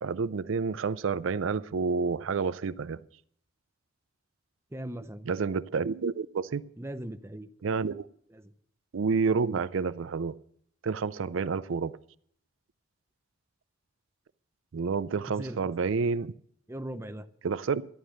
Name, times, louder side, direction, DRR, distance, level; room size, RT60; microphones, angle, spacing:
voice 1, 0.0-3.0 5.3-6.6 7.6-8.1 8.9-10.3 10.8-11.9 14.7-16.3 17.4-17.9, right 5 dB, 80° right, 0.5 m, -29 dB
voice 2, 4.7-5.3 6.8-7.5 8.3-8.5 15.3-15.6 16.7-17.3, right 1 dB, 15° right, 0.7 m, -39 dB
13.0 x 11.0 x 6.5 m
head